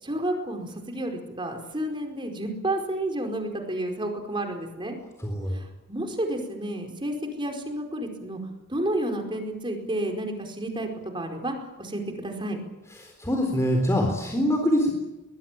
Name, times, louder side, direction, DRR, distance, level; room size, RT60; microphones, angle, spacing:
voice 1, 0.0-5.0 5.5-8.4 8.7-10.9 11.1-12.6, right 1 dB, 20° right, 3 dB, 4.7 m, -31 dB
voice 2, 5.2-5.6 13.0-14.9, equal, 15° left, 2 dB, 3.9 m, -24 dB
23.0 x 21.0 x 9.1 m, 1.0 s
head